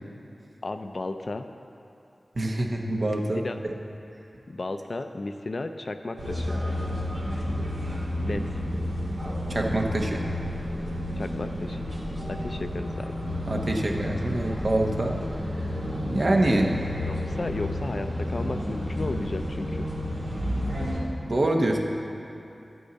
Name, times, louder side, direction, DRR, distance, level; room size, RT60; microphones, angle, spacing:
voice 1, 0.6-1.4 3.4-3.6 4.5-6.5 8.2-8.6 11.2-11.8 12.3-13.1 17.1-19.9, left 2 dB, 55° left, 7 dB, 0.5 m, -34 dB
voice 2, 2.3-3.7 7.5-7.6 8.0-8.4 9.5-10.2 13.5-15.2 16.1-16.8 21.2-21.8, right 1 dB, 55° right, 1 dB, 1.1 m, -26 dB
sound 1, 6.2-21.0, left 1 dB, 75° right, 2.3 m, -31 dB
12.5 x 8.4 x 4.0 m, 2.9 s
cardioid pair, 50°, 0 cm